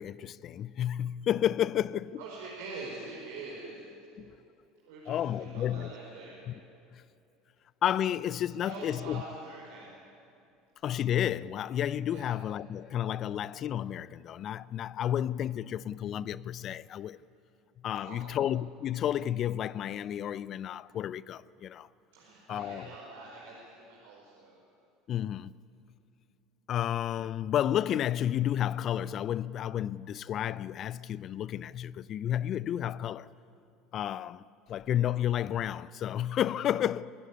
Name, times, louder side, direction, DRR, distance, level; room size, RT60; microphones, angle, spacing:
voice 1, 0.0-2.2 4.2-4.3 5.1-5.9 6.5-6.6 6.9-7.0 7.8-9.2 10.8-17.2 17.8-21.9 22.5-22.9 25.1-25.5 26.7-33.3 33.9-37.1, left 10 dB, 45° left, 0.4 m, -31 dB
voice 2, 2.2-3.8 4.8-6.4 8.6-9.9 12.1-12.2 18.0-18.3 22.1-24.6, right 3 dB, 75° right, 4.8 m, -44 dB
24.5 x 14.0 x 9.8 m
hypercardioid pair, 75°, 0 cm